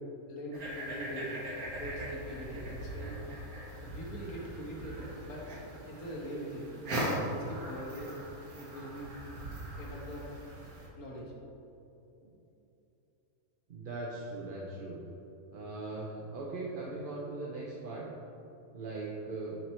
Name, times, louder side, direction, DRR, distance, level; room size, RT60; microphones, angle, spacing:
voice 1, 0.3-1.3 1.7-3.5 3.8-5.5 5.9-8.2 8.5-9.2 9.8-10.3 11.0-11.3, equal, 80° left, -3 dB, 1.8 m, -42 dB
sound 1, 0.5-10.9, right 1 dB, 85° right, 1.7 m, -40 dB
voice 2, 13.7-15.0 15.5-18.1 18.7-19.6, right 2 dB, 45° right, -4 dB, 0.8 m, -39 dB
8.9 x 4.6 x 4.3 m, 3.0 s
omnidirectional pair, 1.5 m